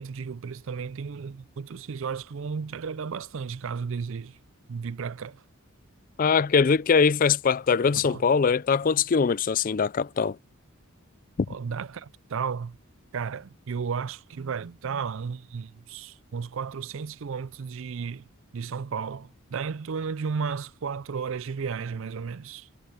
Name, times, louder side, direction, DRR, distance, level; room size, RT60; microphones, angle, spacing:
voice 1, 0.0-4.4 4.7-5.4 7.9-8.2 11.5-12.8 13.1-18.2 18.5-22.7, right 6 dB, 60° right, 0.4 m, -33 dB
voice 2, 6.2-10.4 11.4-11.5, left 5 dB, 40° left, 0.4 m, -22 dB
head